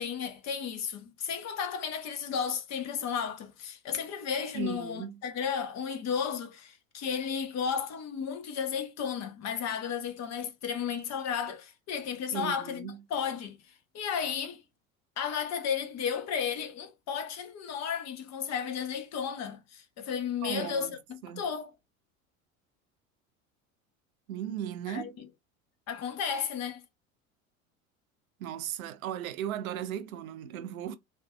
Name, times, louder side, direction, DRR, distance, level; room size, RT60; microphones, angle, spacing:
voice 1, 0.0-13.6 13.9-14.6 15.2-21.7 24.9-25.3 25.9-26.8, left 7 dB, 40° left, 0.9 m, -33 dB
voice 2, 4.5-5.2 12.3-13.0 20.4-20.9 21.2-21.4 24.3-25.2 28.4-31.0, right 10 dB, 75° right, 0.6 m, -36 dB
3.5 x 2.6 x 2.2 m
hypercardioid pair, 75°, 42 cm